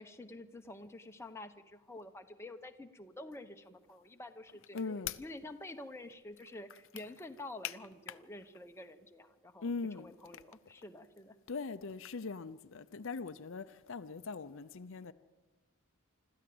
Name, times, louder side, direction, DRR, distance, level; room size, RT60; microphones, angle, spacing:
voice 1, 0.0-9.7 10.0-11.4, left 2 dB, 10° left, 1.0 m, -49 dB
voice 2, 4.7-5.2 7.6-7.7 9.6-10.1 11.5-15.1, left 5 dB, 60° left, 0.6 m, -40 dB
26.0 x 13.5 x 7.8 m
head